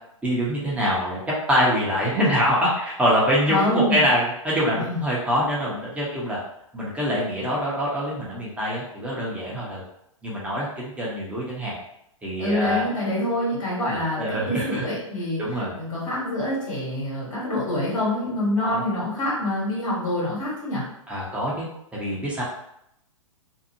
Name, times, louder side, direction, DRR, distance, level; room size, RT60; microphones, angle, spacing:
voice 1, 0.2-1.2 1.5-6.4 6.7-9.8 10.2-11.8 12.2-12.9 13.9-14.8 15.4-15.7 18.6-18.8 21.1-22.4, equal, 10° right, -6 dB, 0.8 m, -24 dB
voice 2, 3.5-4.0 4.7-5.0 12.4-15.4 15.7-20.8, left 1 dB, 60° left, -6 dB, 1.4 m, -26 dB
2.7 x 2.4 x 2.8 m, 0.76 s
figure-of-eight pair, 110°, 17 cm